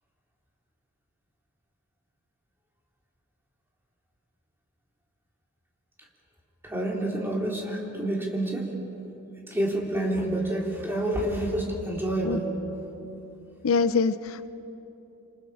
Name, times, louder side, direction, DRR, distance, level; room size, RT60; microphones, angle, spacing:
voice 1, 6.6-8.7 9.5-12.5, right 1 dB, 10° right, -2 dB, 3.4 m, -28 dB
voice 2, 13.6-14.5, left 4 dB, 75° left, 13 dB, 0.6 m, -24 dB
28.5 x 26.5 x 4.9 m, 2.9 s
head